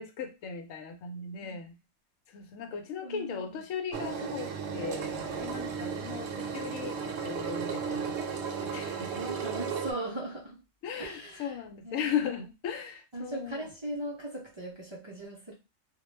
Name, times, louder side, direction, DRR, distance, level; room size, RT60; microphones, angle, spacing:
voice 1, 0.0-1.7 2.3-9.2 10.8-13.6, left 7 dB, 80° left, 5 dB, 1.0 m, -37 dB
voice 2, 3.0-3.7 9.1-10.6 11.0-12.2 13.1-15.5, right 1 dB, 50° right, -3 dB, 0.3 m, -39 dB
Engine, 3.9-9.9, right 6 dB, 65° right, 0.8 m, -34 dB
2.4 x 2.1 x 3.1 m, 0.27 s
omnidirectional pair, 1.4 m